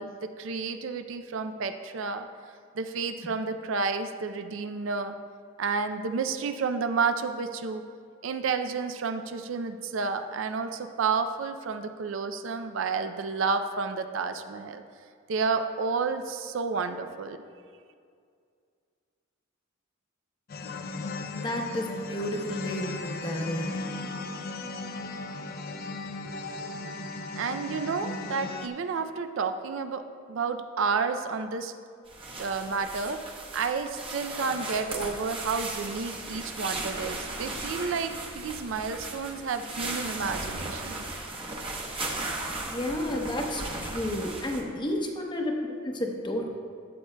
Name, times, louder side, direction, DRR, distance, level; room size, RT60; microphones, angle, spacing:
voice 1, 0.0-2.3 2.7-5.1 5.6-7.9 8.2-14.8 15.3-17.4 26.2-26.3 27.4-31.7 32.4-41.0, right 5 dB, 65° right, 9 dB, 0.4 m, -31 dB
sound 1, 20.5-28.7, left 3 dB, 45° left, 0.4 m, -36 dB
voice 2, 21.3-23.8 42.7-46.5, left 1 dB, 20° left, 2 dB, 0.7 m, -31 dB
sound 2, 32.1-44.6, right 2 dB, 25° right, 0.8 m, -36 dB
12.5 x 7.9 x 2.2 m, 2.2 s
head